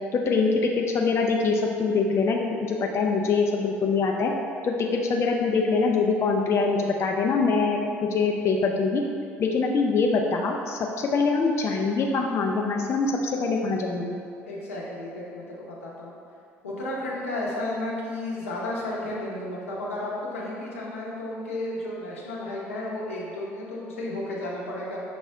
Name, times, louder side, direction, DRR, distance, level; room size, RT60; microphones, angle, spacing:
voice 1, 0.1-4.3 4.6-9.0 9.4-14.2, left 4 dB, 40° left, 1 dB, 0.4 m, -24 dB
voice 2, 14.5-16.1 16.6-25.0, left 1 dB, 90° left, -5 dB, 0.7 m, -33 dB
5.8 x 2.0 x 3.6 m, 2.4 s
hypercardioid pair, 60°, 7 cm